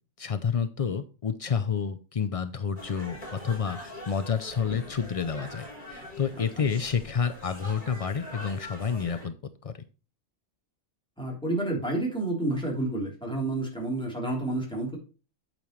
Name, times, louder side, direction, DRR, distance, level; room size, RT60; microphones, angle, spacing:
voice 1, 0.2-9.3 9.6-9.7, left 6 dB, 60° left, 10 dB, 0.3 m, -29 dB
sound 1, 2.8-9.3, left 1 dB, 35° left, 4.2 m, -43 dB
voice 2, 11.2-14.9, right 2 dB, 5° left, -2 dB, 3.4 m, -29 dB
8.9 x 8.4 x 3.1 m, 0.33 s
omnidirectional pair, 1.4 m